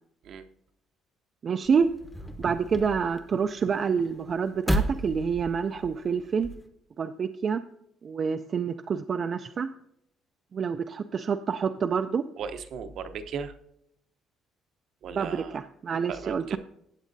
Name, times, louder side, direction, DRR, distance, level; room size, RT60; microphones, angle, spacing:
voice 1, 1.4-1.9 2.4-6.5 7.0-7.6 8.0-9.7 10.5-12.2 15.2-16.6, right 6 dB, 35° right, 7 dB, 0.3 m, -27 dB
sound 1, 1.7-6.7, equal, 5° left, 0.7 m, -34 dB
voice 2, 12.4-13.6 15.0-15.6 16.1-16.6, right 6 dB, 55° right, 9 dB, 0.7 m, -37 dB
15.5 x 8.2 x 2.6 m, 0.77 s
cardioid pair, 150°, 0 cm